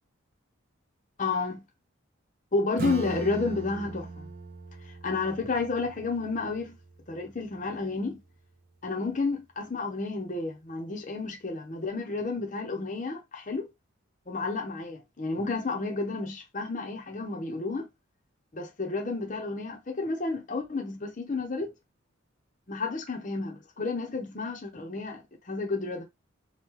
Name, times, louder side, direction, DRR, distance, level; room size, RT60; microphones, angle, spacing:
voice 1, 1.2-1.6 2.5-4.3 4.8-6.8 7.1-8.2 8.8-13.7 14.3-17.9 18.5-21.7 22.7-26.0, left 3 dB, 35° left, 0.7 m, -31 dB
Acoustic guitar / Strum, 2.8-8.0, right 4 dB, 40° right, 0.4 m, -40 dB
2.9 x 2.2 x 3.7 m
head